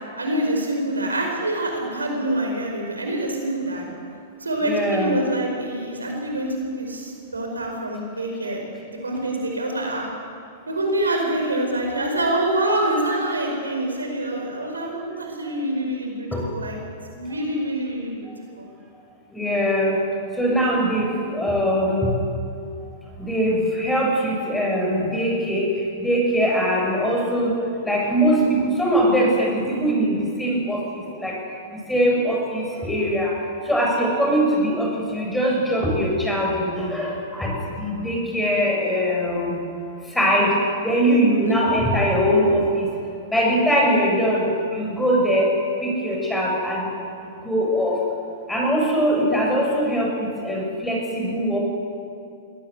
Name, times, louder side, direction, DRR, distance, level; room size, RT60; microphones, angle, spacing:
voice 1, 0.2-3.9 4.4-8.6 8.9-10.1 10.7-16.8 17.1-18.3 18.6-18.7 41.4-41.5, right 1 dB, 90° right, 2 dB, 5.0 m, -26 dB
voice 2, 4.6-5.2 14.4-14.5 15.5-15.6 16.3-16.5 19.3-20.1 20.3-22.2 23.2-31.4 31.7-39.6 40.0-42.9 43.3-46.9 47.2-48.0 48.5-51.6, equal, 5° left, -2 dB, 7.5 m, -22 dB
22.0 x 18.0 x 8.2 m, 2.4 s
hypercardioid pair, 105°, 0 cm